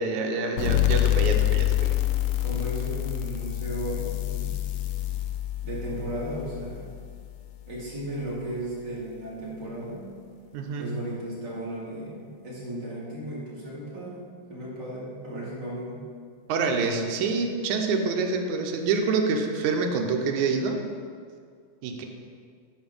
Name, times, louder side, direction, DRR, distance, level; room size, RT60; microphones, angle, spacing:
voice 1, 0.0-1.9 10.5-10.9 16.5-20.8 21.8-22.1, right 4 dB, 80° right, 3 dB, 2.2 m, -26 dB
sound 1, 0.6-7.8, left 13 dB, 85° left, 1.4 m, -27 dB
voice 2, 2.4-4.6 5.6-6.9 7.7-10.2 10.8-16.0, right 1 dB, 35° right, -7 dB, 2.7 m, -35 dB
11.0 x 4.8 x 5.4 m, 2.1 s
omnidirectional pair, 3.6 m